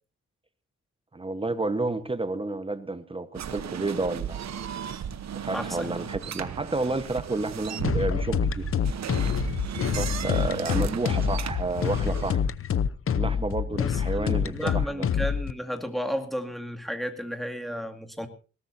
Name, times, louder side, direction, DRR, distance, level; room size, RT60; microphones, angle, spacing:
voice 1, 1.1-4.5 5.4-8.7 9.9-12.5 13.1-15.1, right 2 dB, 20° right, 12 dB, 1.2 m, -30 dB
sound 1, 3.3-12.3, right 9 dB, 65° right, 1.0 m, -35 dB
voice 2, 5.5-6.4 13.8-18.3, equal, ahead, 6 dB, 2.2 m, -34 dB
sound 2, 7.8-15.5, left 7 dB, 50° left, 0.8 m, -26 dB
20.0 x 17.5 x 2.7 m, 0.35 s
wide cardioid pair, 120°, 29 cm